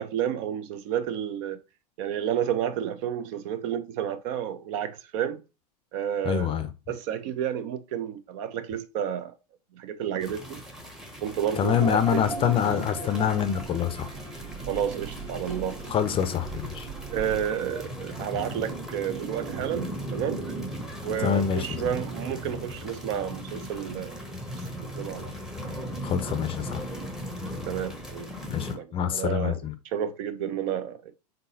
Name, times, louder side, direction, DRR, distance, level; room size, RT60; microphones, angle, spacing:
voice 1, 0.0-1.6 2.0-5.4 5.9-6.6 6.9-9.3 9.8-10.6 11.2-12.0 14.7-15.8 17.1-24.2 24.7-25.3 27.7-28.3 28.7-29.6 29.9-31.1, right 9 dB, 50° right, 0.6 m, -31 dB
voice 2, 6.2-6.7 11.6-14.1 15.9-16.9 21.2-21.9 26.0-26.9 28.5-29.7, left 8 dB, 25° left, 0.6 m, -26 dB
sound 1, 10.2-28.8, equal, 5° right, 0.8 m, -38 dB
sound 2, 11.5-17.6, right 3 dB, 75° right, 1.5 m, -39 dB
3.8 x 3.8 x 2.7 m
hypercardioid pair, 95°, 21 cm